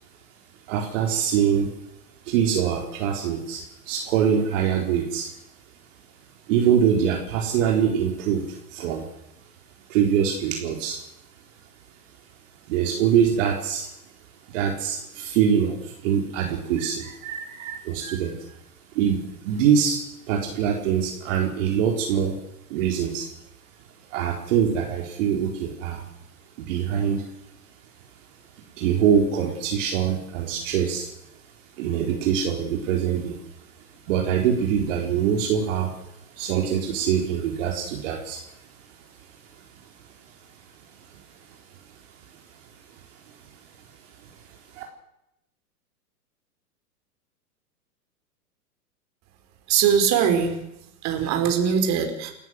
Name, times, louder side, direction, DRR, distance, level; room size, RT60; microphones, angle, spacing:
voice 1, 0.7-1.7 2.3-5.3 6.5-9.0 9.9-11.0 12.7-13.9 14.5-18.4 18.9-20.0 20.3-22.4 22.7-23.3 24.1-26.0 26.6-27.3 28.8-31.1 31.8-33.4 34.1-36.0 36.3-38.4 44.7-44.8, right 8 dB, 50° right, 1 dB, 4.3 m, -24 dB
voice 2, 49.7-50.6 51.0-52.3, right 7 dB, 35° right, 5 dB, 4.9 m, -21 dB
30.0 x 14.0 x 7.6 m, 0.85 s
hypercardioid pair, 110°, 47 cm